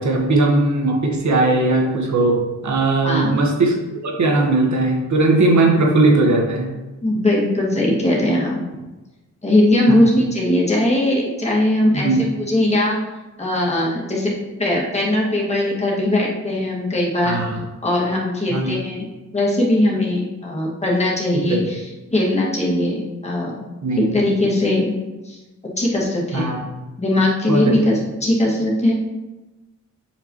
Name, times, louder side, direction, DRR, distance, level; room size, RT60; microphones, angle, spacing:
voice 1, 0.0-3.7 4.0-6.7 9.9-10.0 11.9-12.3 17.2-17.6 18.5-18.7 21.3-21.6 23.8-24.1 26.3-26.6 27.5-27.7, right 2 dB, 70° right, 0 dB, 1.6 m, -18 dB
voice 2, 3.0-3.4 5.6-5.7 7.0-8.6 9.4-13.0 13.4-14.3 14.6-17.4 17.8-19.1 19.3-21.8 22.1-23.6 24.0-24.9 25.2-25.4 25.8-26.4 27.0-28.9, left 1 dB, 20° left, -5 dB, 2.2 m, -19 dB
7.4 x 5.1 x 3.2 m, 1.1 s
cardioid pair, 85°, 30 cm